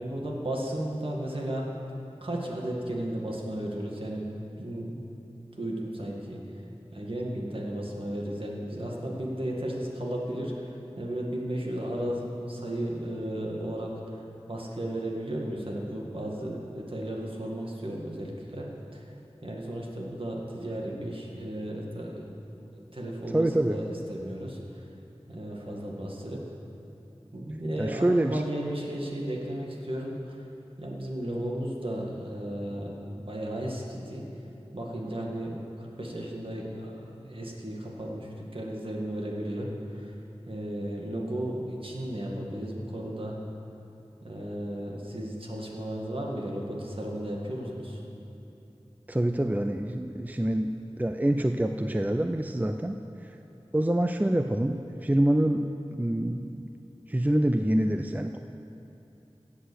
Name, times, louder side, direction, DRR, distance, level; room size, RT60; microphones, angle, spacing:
voice 1, 0.0-1.7 2.2-4.3 4.6-5.3 5.5-6.4 6.9-14.2 14.5-19.1 19.4-22.3 22.6-24.8 25.3-26.4 27.3-30.4 30.8-34.3 34.7-40.2 40.5-43.4 44.2-48.0, right 1 dB, 55° right, -2 dB, 2.1 m, -34 dB
voice 2, 23.3-23.8 27.8-28.4 49.1-50.7 51.0-53.4 53.7-55.7 55.9-56.5 57.1-58.4, right 1 dB, 15° right, 6 dB, 0.5 m, -26 dB
15.5 x 8.3 x 6.4 m, 2.8 s
wide cardioid pair, 45°, 11 cm